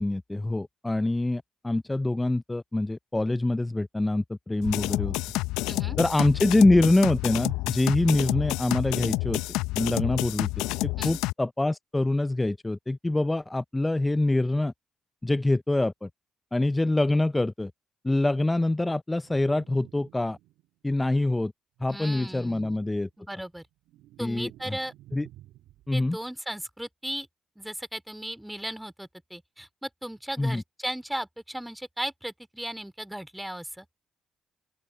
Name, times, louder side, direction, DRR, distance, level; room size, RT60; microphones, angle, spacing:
voice 1, 0.0-5.1 6.0-9.4 9.7-10.5 10.8-14.7 15.2-16.1 16.5-17.7 18.0-20.4 20.8-21.5 21.8-23.1 24.2-24.8 25.1-25.3 25.9-26.2 30.4-30.6, left 2 dB, 15° left, 0.5 m, -25 dB
sound 1, 4.6-11.3, left 19 dB, 75° left, 0.7 m, -29 dB
voice 2, 5.7-6.0 11.0-11.2 21.9-22.8 23.2-23.6 24.2-24.9 25.9-27.3 27.6-33.9, right 1 dB, 5° right, 2.8 m, -36 dB
sound 2, 19.2-20.8 21.8-23.2 23.6-26.0, right 15 dB, 70° right, 3.1 m, -53 dB
open air
hypercardioid pair, 45°, 0 cm